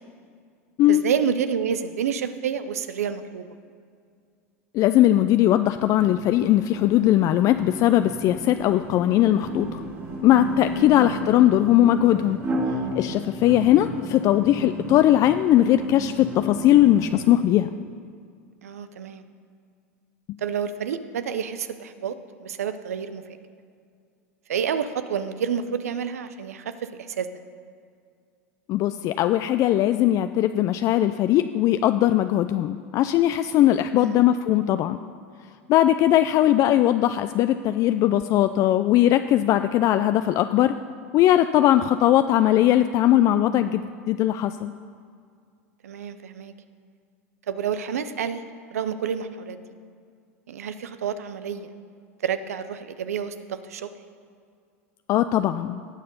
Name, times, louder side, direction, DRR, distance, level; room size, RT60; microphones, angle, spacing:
voice 1, 0.9-3.5 10.9-11.1 18.6-19.2 20.4-23.2 24.5-27.3 33.9-34.2 45.8-46.5 47.5-48.4 48.7-49.6 50.5-51.7 52.2-53.9, right 7 dB, 85° right, 11 dB, 0.7 m, -29 dB
voice 2, 4.7-9.8 10.2-12.4 13.0-17.7 28.7-35.0 35.7-40.7 41.1-44.7 55.1-55.8, left 13 dB, 45° left, 10 dB, 0.4 m, -19 dB
sound 1, 5.7-17.3, right 1 dB, 30° right, 2.3 m, -34 dB
17.5 x 6.6 x 5.4 m, 2.2 s
hypercardioid pair, 95°, 8 cm